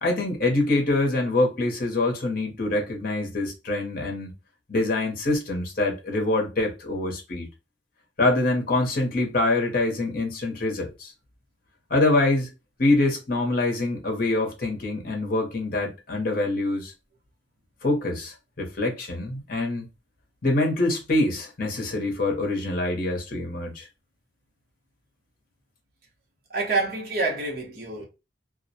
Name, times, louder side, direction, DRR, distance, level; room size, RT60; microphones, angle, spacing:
voice 1, 0.0-4.4 4.7-7.5 8.2-11.1 11.9-12.5 12.8-16.9 17.8-19.9 20.4-23.9, left 2 dB, 50° left, 0.7 m, -25 dB
voice 2, 26.5-28.0, right 3 dB, 55° right, 0.9 m, -27 dB
2.3 x 2.1 x 2.6 m
head